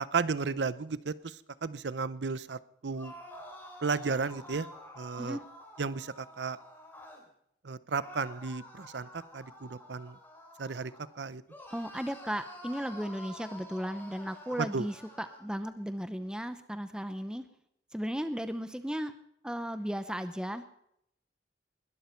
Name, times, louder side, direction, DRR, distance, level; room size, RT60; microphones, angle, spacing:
voice 1, 0.0-3.1 3.8-4.7 5.0-5.4 5.8-6.6 7.6-10.2 10.6-11.4 14.6-14.8, right 4 dB, 85° right, 17 dB, 0.7 m, -34 dB
sound 1, 2.9-7.2 8.0-11.1 11.5-15.4, left 1 dB, 10° left, 3.2 m, -49 dB
voice 2, 11.7-17.4 17.9-19.1 19.4-20.6, equal, 5° right, 10 dB, 0.7 m, -35 dB
21.0 x 12.5 x 4.5 m, 0.74 s
head